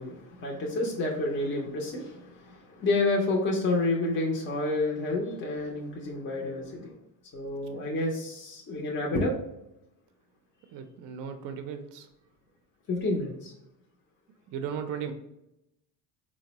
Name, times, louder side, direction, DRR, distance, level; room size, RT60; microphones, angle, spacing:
voice 1, 0.0-7.0 7.3-9.3 12.9-13.5, left 2 dB, 30° left, -2 dB, 0.5 m, -29 dB
voice 2, 10.7-12.1 14.5-15.1, right 7 dB, 50° right, 7 dB, 0.5 m, -36 dB
3.8 x 2.0 x 2.8 m, 0.85 s
cardioid pair, 130°, 43 cm